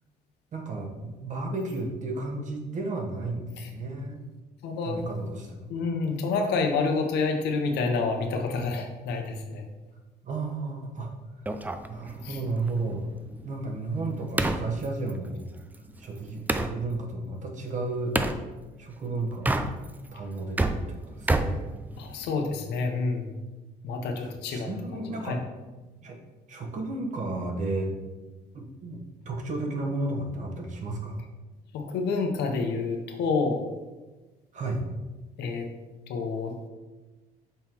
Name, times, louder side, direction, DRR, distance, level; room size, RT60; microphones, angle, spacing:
voice 1, 0.5-4.2 4.8-5.7 10.2-11.1 11.9-13.1 13.4-15.5 16.0-18.2 18.8-19.6 20.1-21.7 24.2-25.4 26.0-26.2 26.5-27.9 28.5-31.2 34.5-34.8, right 2 dB, 45° right, 2 dB, 1.2 m, -33 dB
voice 2, 4.6-5.0 5.7-9.6 12.2-12.4 22.0-23.3 23.8-24.7 25.2-25.4 31.7-33.6 35.4-35.7 36.1-36.5, left 4 dB, 80° left, 4 dB, 0.9 m, -28 dB
sound 1, 11.5-16.8 18.1-18.4 19.3-20.1 20.4-22.4, right 2 dB, 10° right, 0.3 m, -30 dB
5.6 x 3.7 x 4.5 m, 1.2 s
cardioid pair, 110°, 17 cm